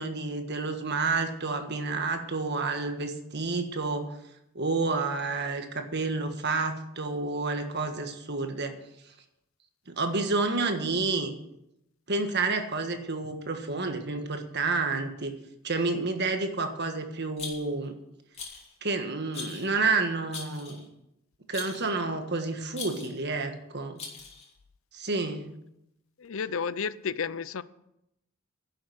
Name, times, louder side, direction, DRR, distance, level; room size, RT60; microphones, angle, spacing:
voice 1, 0.0-4.1 4.5-8.7 9.9-11.3 12.1-15.3 15.6-17.9 18.8-20.8 21.5-24.0 24.9-25.5, right 3 dB, 55° right, 6 dB, 1.5 m, -29 dB
Rattle, 17.4-17.9 18.3-18.7 19.3-19.7 20.3-20.9 21.5-21.9 22.7-23.2 24.0-24.5, left 5 dB, 30° left, 2.8 m, -40 dB
voice 2, 26.2-27.6, left 6 dB, 65° left, 17 dB, 0.5 m, -32 dB
11.0 x 7.6 x 7.9 m, 0.84 s
head